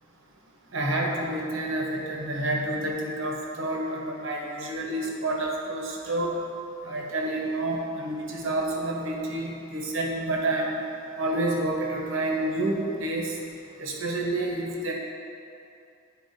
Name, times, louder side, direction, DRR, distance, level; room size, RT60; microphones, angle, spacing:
voice 1, 0.7-6.4 6.8-10.8 11.2-13.3 13.8-14.9, right 1 dB, 80° right, -1 dB, 0.9 m, -29 dB
11.5 x 4.5 x 2.6 m, 2.7 s
head